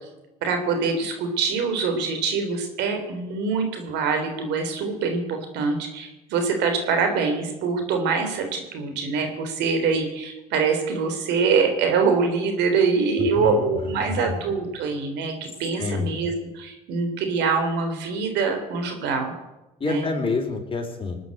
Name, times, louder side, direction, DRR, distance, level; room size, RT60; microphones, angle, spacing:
voice 1, 0.4-15.3 15.6-19.3 19.8-20.1, right 4 dB, 75° right, 5 dB, 3.6 m, -24 dB
voice 2, 13.2-13.6 14.0-14.4 15.8-16.1 19.8-21.2, left 4 dB, 30° left, 2 dB, 4.3 m, -28 dB
19.5 x 9.3 x 7.9 m, 0.99 s
supercardioid pair, 75°, 18 cm